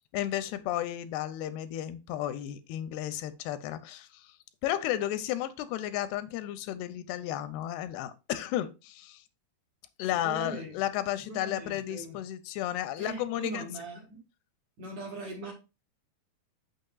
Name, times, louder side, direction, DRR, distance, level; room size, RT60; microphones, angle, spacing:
voice 1, 0.1-4.4 4.6-9.3 10.0-13.7, left 12 dB, 85° left, 12 dB, 2.6 m, -33 dB
voice 2, 10.2-10.7 11.2-12.2 13.0-14.2 14.8-15.5, right 2 dB, 55° right, 0 dB, 2.7 m, -40 dB
6.5 x 6.5 x 2.3 m, 0.28 s
omnidirectional pair, 4.6 m